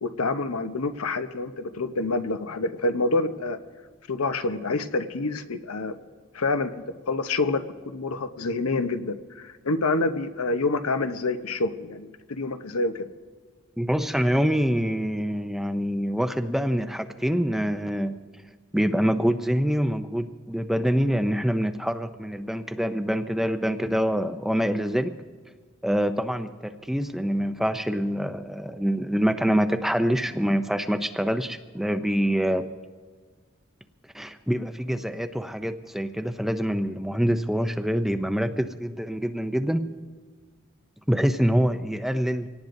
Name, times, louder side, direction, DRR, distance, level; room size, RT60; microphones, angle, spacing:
voice 1, 0.0-3.6 4.1-5.9 6.3-13.1, left 3 dB, 85° left, 9 dB, 0.9 m, -27 dB
voice 2, 13.8-18.2 18.7-25.2 25.8-32.7 34.1-39.9 41.1-42.5, equal, ahead, 8 dB, 0.4 m, -25 dB
25.5 x 18.0 x 2.6 m, 1.5 s
head